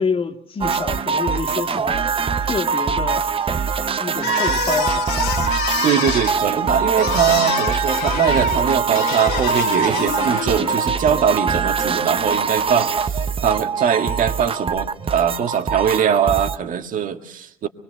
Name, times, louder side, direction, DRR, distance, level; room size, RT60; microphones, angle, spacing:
voice 1, 0.0-3.7 4.0-5.1, left 5 dB, 35° left, 2.0 m, -28 dB
sound 1, 0.6-16.6, right 5 dB, 35° right, 0.8 m, -23 dB
sound 2, 4.2-10.8, left 9 dB, 80° left, 1.5 m, -27 dB
voice 2, 5.8-17.7, right 8 dB, 55° right, 1.6 m, -21 dB
24.0 x 22.0 x 6.7 m
supercardioid pair, 70°, 16 cm